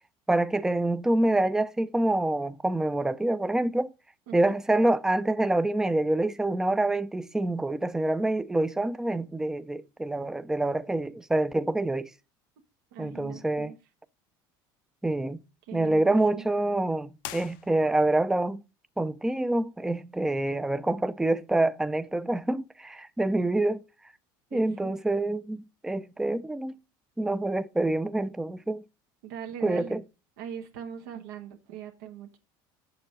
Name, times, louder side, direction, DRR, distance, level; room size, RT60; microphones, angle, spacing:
voice 1, 0.3-3.9 4.3-12.1 13.0-13.7 15.0-15.4 15.7-18.6 19.0-23.8 24.5-26.7 27.2-28.8 29.6-30.0, right 2 dB, 5° right, 0.4 m, -26 dB
voice 2, 12.9-13.8 15.6-16.5 24.5-25.0 29.2-30.0 30.4-32.4, right 9 dB, 85° right, 1.3 m, -41 dB
sound 1, 17.2-18.2, left 14 dB, 85° left, 0.7 m, -43 dB
7.6 x 6.8 x 3.8 m
cardioid pair, 130°, 11 cm